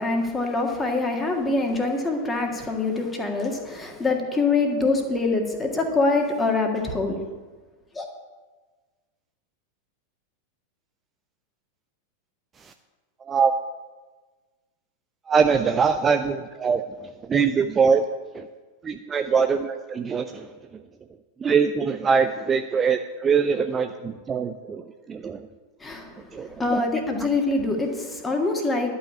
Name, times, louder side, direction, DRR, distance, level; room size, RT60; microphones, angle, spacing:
voice 1, 0.0-7.2 7.9-8.1 25.8-28.9, left 3 dB, 15° left, 2 dB, 1.8 m, -25 dB
voice 2, 15.3-16.8 17.3-18.0 18.3-18.5 18.8-20.5 21.4-25.4 26.3-26.8, right 6 dB, 20° right, 7 dB, 0.5 m, -23 dB
11.0 x 5.6 x 8.4 m, 1.3 s
figure-of-eight pair, 90°, 0 cm